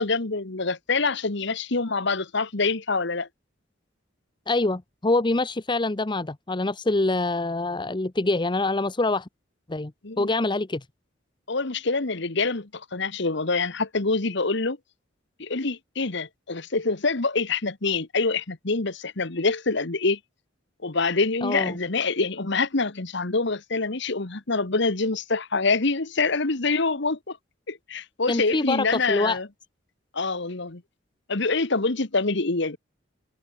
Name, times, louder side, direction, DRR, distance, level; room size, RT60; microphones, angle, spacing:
voice 1, 0.0-3.3 10.0-10.3 11.5-14.8 15.4-20.2 20.8-27.4 27.7-29.5 30.1-30.8 31.3-32.8, left 3 dB, 60° left, 1.5 m, -26 dB
voice 2, 4.5-9.3 9.7-9.9 10.2-10.8 21.4-21.8 28.3-29.4, left 2 dB, 25° left, 0.8 m, -25 dB
head